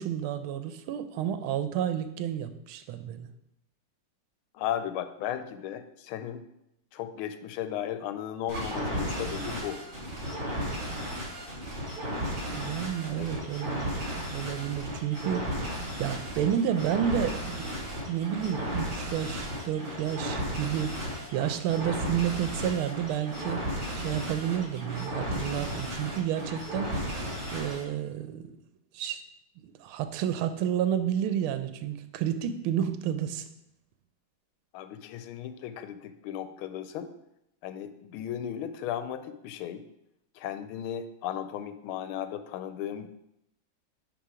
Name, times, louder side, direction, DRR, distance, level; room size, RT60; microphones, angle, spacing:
voice 1, 0.0-3.3 12.6-13.9 14.3-15.5 16.0-21.0 21.3-23.6 23.9-26.9 27.5-28.6 28.9-29.2 29.6-33.4, right 10 dB, 85° right, 10 dB, 1.5 m, -30 dB
voice 2, 4.5-6.4 6.9-9.8 13.2-13.5 34.7-37.1 37.6-39.8 40.3-43.1, left 10 dB, 85° left, 11 dB, 1.4 m, -35 dB
sound 1, 8.5-27.9, equal, 40° right, 2.4 m, -34 dB
9.8 x 3.4 x 4.9 m, 0.81 s
omnidirectional pair, 2.3 m